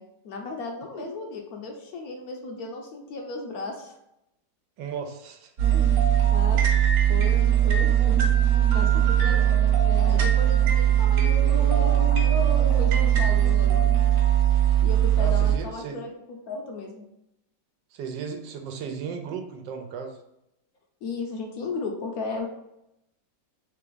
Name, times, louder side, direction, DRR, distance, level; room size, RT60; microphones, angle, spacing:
voice 1, 0.0-3.9 5.7-6.0 6.3-6.6 7.1-8.2 8.7-13.9 14.8-17.0 21.0-22.5, left 3 dB, 65° left, 2 dB, 1.0 m, -36 dB
voice 2, 4.8-5.5 15.2-16.0 17.9-20.2, right 6 dB, 80° right, 5 dB, 1.3 m, -35 dB
sound 1, 5.6-15.6, right 10 dB, 55° right, 1.1 m, -20 dB
3.4 x 3.3 x 3.8 m, 0.84 s
omnidirectional pair, 2.0 m